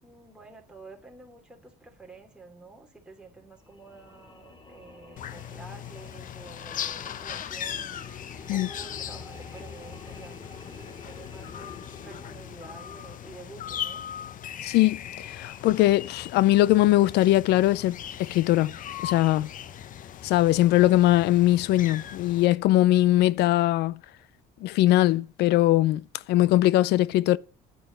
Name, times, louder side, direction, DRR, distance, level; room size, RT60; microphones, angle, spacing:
voice 1, 0.0-11.7 12.0-14.1, right 3 dB, 5° right, 2.8 m, -49 dB
sound 1, 3.6-13.9, left 3 dB, 30° left, 2.6 m, -49 dB
sound 2, 5.2-22.5, left 10 dB, 50° left, 0.8 m, -39 dB
voice 2, 14.6-18.8 19.0-19.5 20.2-24.0 24.6-27.4, left 15 dB, 80° left, 0.5 m, -21 dB
9.4 x 8.7 x 6.6 m
cardioid pair, 110°, 17 cm